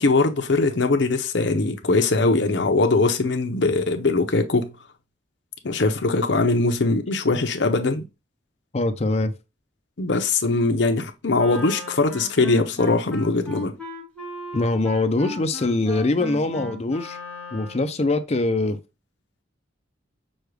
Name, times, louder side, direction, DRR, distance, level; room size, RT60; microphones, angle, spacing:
voice 1, 0.0-4.7 5.6-8.0 10.0-13.7, left 3 dB, 65° left, 0.7 m, -21 dB
voice 2, 8.7-9.3 14.5-17.2 17.5-18.8, left 2 dB, 35° left, 0.5 m, -23 dB
Wind instrument woodwind instrument, 11.3-18.0, left 1 dB, 5° left, 1.2 m, -37 dB
6.3 x 2.3 x 3.2 m
head